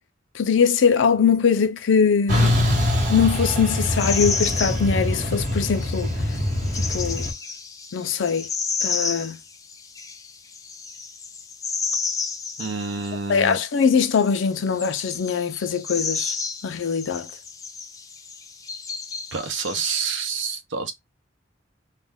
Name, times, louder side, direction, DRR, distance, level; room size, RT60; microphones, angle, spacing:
voice 1, 0.3-2.6 3.1-6.1 6.7-7.3 7.9-8.5 8.8-9.4 13.3-16.3 16.6-17.3, left 6 dB, 85° left, 0.5 m, -21 dB
Truck, 2.3-7.3, left 1 dB, 40° right, 0.9 m, -23 dB
sound 1, 4.0-19.8, left 5 dB, 20° left, 0.4 m, -32 dB
voice 2, 12.6-13.6 19.3-20.9, right 5 dB, 80° right, 0.7 m, -28 dB
2.4 x 2.2 x 3.3 m
head